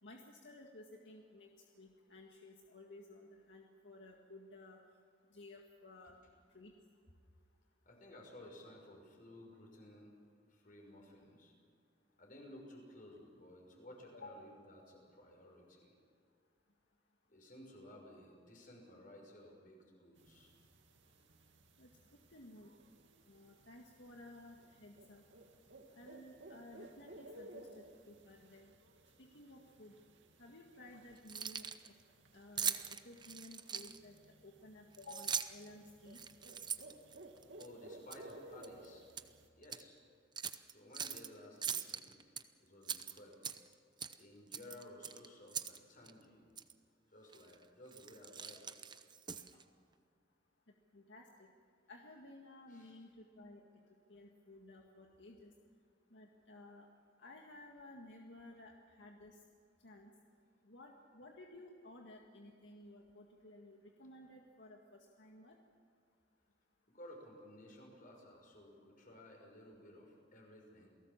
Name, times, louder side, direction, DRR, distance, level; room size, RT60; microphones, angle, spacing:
voice 1, 0.0-1.5 1.8-4.8 5.3-6.2 6.5-6.7 14.1-14.4 21.8-21.9 22.3-22.7 23.3-25.2 26.0-28.7 29.2-29.9 30.4-31.9 32.3-34.1 34.4-36.2 50.9-51.5 51.9-53.6 54.1-55.5 56.1-56.9 57.2-59.4 59.8-60.1 60.7-65.6, left 2 dB, 80° left, 1 dB, 1.9 m, -55 dB
voice 2, 7.8-10.1 10.5-11.5 12.2-15.9 17.3-20.5 36.5-36.6 37.6-39.0 39.6-40.0 40.7-42.3 42.6-43.5 44.2-46.5 47.1-48.8 49.5-49.6 52.7-53.0 66.9-70.9, left 1 dB, 50° left, 1 dB, 6.3 m, -56 dB
sound 1, 20.2-39.5, right 1 dB, 90° right, 2.3 m, -58 dB
Keys jangling, 31.2-31.9 32.6-34.2 34.9-35.7 36.1-37.7 38.1-38.3 38.6-39.3 39.6-39.8 40.4-41.3 41.6-42.4 42.8-43.7 44.0-44.2 44.5-45.8 46.1-46.2 46.6-46.7 47.3-47.5 47.9-49.6, right 7 dB, 25° right, 0.8 m, -41 dB
28.5 x 18.5 x 7.4 m, 2.2 s
head